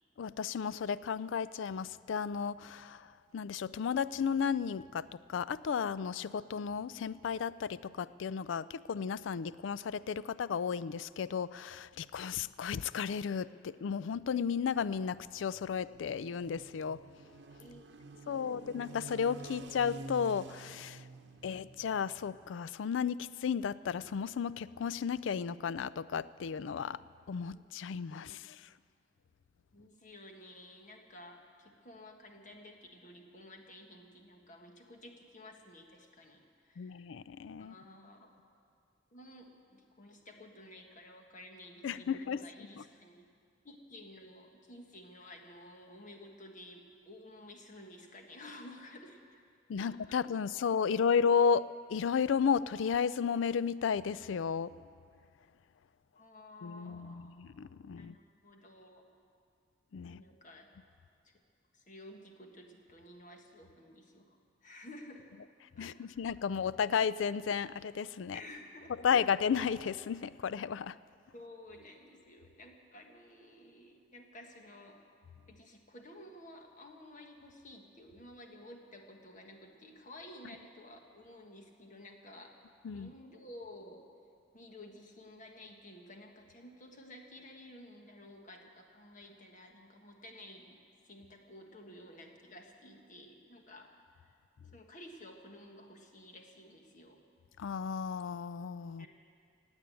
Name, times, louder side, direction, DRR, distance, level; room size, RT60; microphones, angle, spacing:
voice 1, 0.2-17.0 18.3-21.0 21.4-27.0 27.3-28.7 36.8-37.7 41.8-42.4 49.7-54.7 56.6-58.2 59.9-60.2 65.8-68.4 69.0-71.0 82.8-83.1 97.6-99.1, left 6 dB, 80° left, 17 dB, 0.4 m, -33 dB
voice 2, 12.2-12.6 17.6-18.8 21.0-21.7 27.5-27.6 28.0-28.5 29.7-37.1 37.6-38.3 39.1-43.3 43.6-49.4 49.8-50.4 50.9-51.0 56.2-57.4 58.0-59.0 60.0-60.7 61.2-61.3 61.7-65.4 65.8-66.2 68.3-69.3 71.3-75.0 75.5-82.6 82.9-84.1 84.5-90.8 91.0-94.3 94.7-97.2 99.0-99.1, left 1 dB, 45° left, 2 dB, 1.6 m, -53 dB
sound 1, 14.8-22.5, right 2 dB, 65° right, 0.9 m, -50 dB
16.5 x 8.9 x 9.1 m, 2.3 s
head